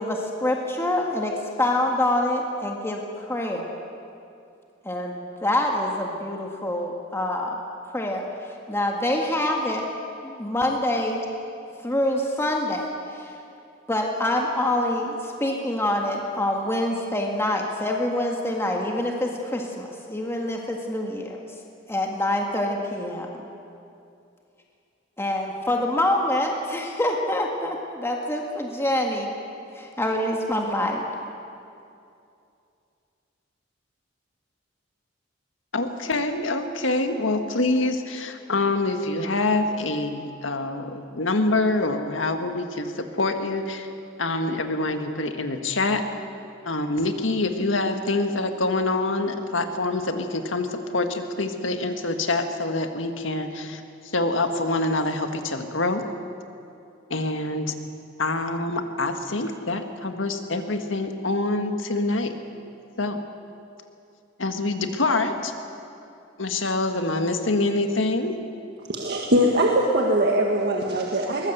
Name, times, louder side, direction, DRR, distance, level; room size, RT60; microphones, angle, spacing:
voice 1, 0.0-3.7 4.9-7.6 7.9-8.2 8.7-9.9 10.2-11.2 11.8-12.8 13.1-13.3 13.9-21.4 21.9-23.5 25.2-29.4 29.8-31.0, left 1 dB, 15° left, 0 dB, 1.8 m, -26 dB
voice 2, 35.7-43.9 44.2-46.0 46.6-56.0 57.1-57.8 58.2-62.3 63.0-63.2 64.4-65.5 66.4-68.4, left 2 dB, 75° left, 6 dB, 1.8 m, -25 dB
voice 3, 68.9-71.5, right 1 dB, 55° right, 0 dB, 1.8 m, -22 dB
22.0 x 19.5 x 8.0 m, 2.6 s
head